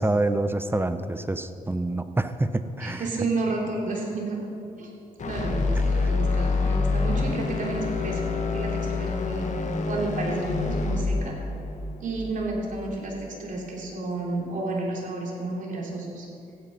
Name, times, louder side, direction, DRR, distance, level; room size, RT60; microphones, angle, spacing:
voice 1, 0.0-3.0 6.0-6.1, right 2 dB, 15° right, 11 dB, 0.7 m, -26 dB
voice 2, 2.8-4.4 4.8-4.9 5.2-9.5 9.9-11.3 12.0-16.3, right 2 dB, 60° right, -1 dB, 3.1 m, -31 dB
sound 1, 5.2-13.3, left 3 dB, 55° left, 1.4 m, -27 dB
15.0 x 9.6 x 5.4 m, 2.6 s
cardioid pair, 75°, 15 cm